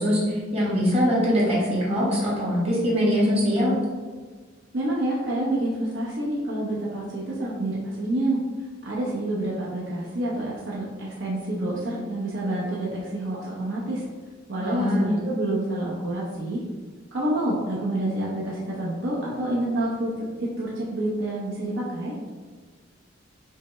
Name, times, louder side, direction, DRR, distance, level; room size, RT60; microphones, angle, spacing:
voice 1, 0.0-3.8 14.5-15.1, equal, 30° right, -7 dB, 1.4 m, -22 dB
voice 2, 4.7-8.4 8.8-14.1 14.5-16.6 17.1-22.1, right 1 dB, 75° right, -6 dB, 0.8 m, -28 dB
5.5 x 2.1 x 3.1 m, 1.4 s
head